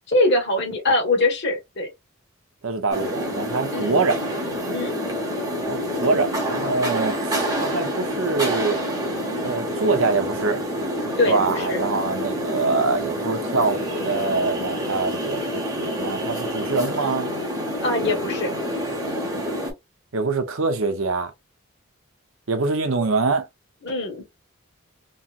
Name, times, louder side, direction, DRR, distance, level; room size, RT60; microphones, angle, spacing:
voice 1, 0.1-1.9 3.7-4.1 4.7-5.0 11.2-11.8 17.8-18.5 23.8-24.2, left 2 dB, 50° left, 1.4 m, -23 dB
voice 2, 2.6-4.2 5.7-8.8 9.4-10.6 11.3-17.3 20.1-21.3 22.5-23.5, right 4 dB, 70° right, 0.7 m, -24 dB
sound 1, 2.9-19.7, equal, 15° right, 1.0 m, -27 dB
3.0 x 2.9 x 2.4 m
head